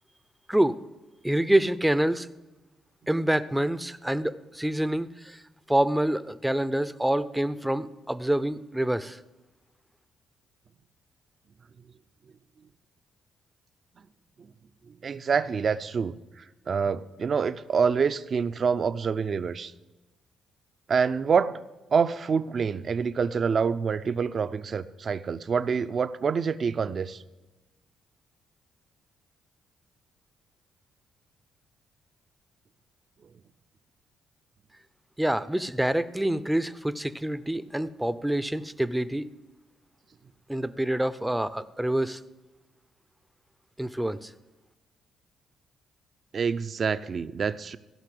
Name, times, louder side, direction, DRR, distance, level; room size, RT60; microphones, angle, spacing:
voice 1, 1.2-2.3 3.1-5.4 5.7-9.2 35.2-39.2 40.5-42.2 43.8-44.3, right 1 dB, 5° right, 14 dB, 0.6 m, -26 dB
voice 2, 15.0-19.7 20.9-21.6 21.9-27.2 46.3-47.8, right 6 dB, 45° right, 13 dB, 0.6 m, -26 dB
15.0 x 5.8 x 7.8 m, 1.1 s
cardioid pair, 90°, 0 cm